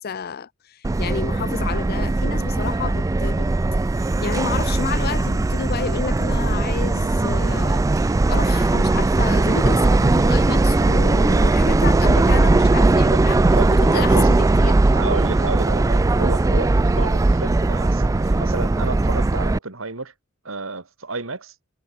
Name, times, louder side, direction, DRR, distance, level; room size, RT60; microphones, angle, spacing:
voice 1, 0.0-3.8 4.2-13.4 13.7-14.8, left 5 dB, 50° left, 0.6 m, -30 dB
Subway metro underground, 0.8-19.6, right 2 dB, 15° right, 0.3 m, -19 dB
sound 1, 10.5-19.6, right 2 dB, 65° right, 1.3 m, -42 dB
voice 2, 13.5-14.5 14.9-20.1 20.4-21.5, right 3 dB, 80° right, 2.6 m, -31 dB
head